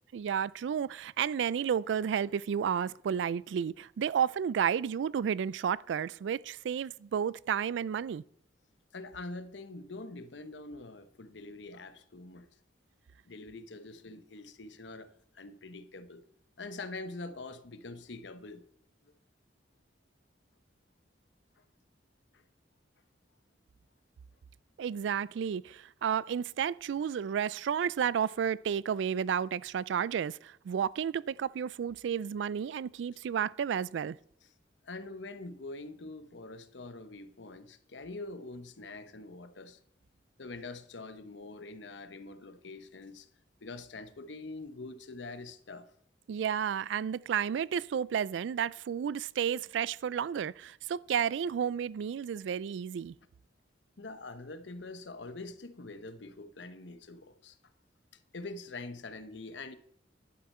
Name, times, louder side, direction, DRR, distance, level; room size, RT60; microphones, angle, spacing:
voice 1, 0.1-8.2 24.8-34.2 46.3-53.1, right 8 dB, 80° right, 0.3 m, -32 dB
voice 2, 8.9-12.5 13.3-16.2 16.6-18.6 19.0-19.1 22.3-22.4 34.8-39.8 40.4-43.3 43.6-45.9 54.0-57.6 58.3-59.8, left 3 dB, 75° left, 0.9 m, -44 dB
11.5 x 10.5 x 4.3 m
head